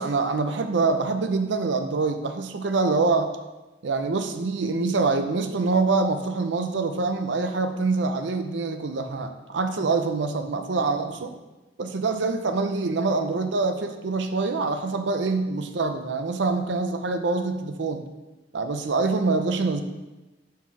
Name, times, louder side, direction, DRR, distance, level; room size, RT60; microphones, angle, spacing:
voice 1, 0.0-3.3 3.8-11.4 11.8-18.0 18.5-19.8, right 3 dB, 75° right, 7 dB, 0.5 m, -25 dB
5.6 x 4.3 x 6.0 m, 1.1 s
head